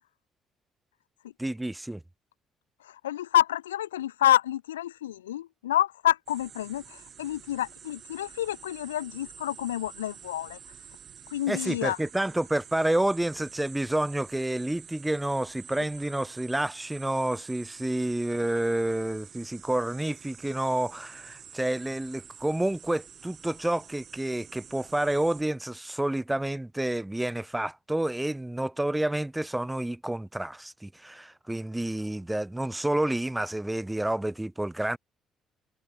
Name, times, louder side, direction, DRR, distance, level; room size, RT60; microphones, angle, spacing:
voice 1, 1.4-2.0 11.5-35.0, right 1 dB, 10° right, 1.1 m, -29 dB
voice 2, 3.0-10.6 11.3-12.0, left 12 dB, 80° left, 0.3 m, -28 dB
sound 1, 6.3-25.4, right 8 dB, 45° right, 7.4 m, -49 dB
figure-of-eight pair, 45°, 0 cm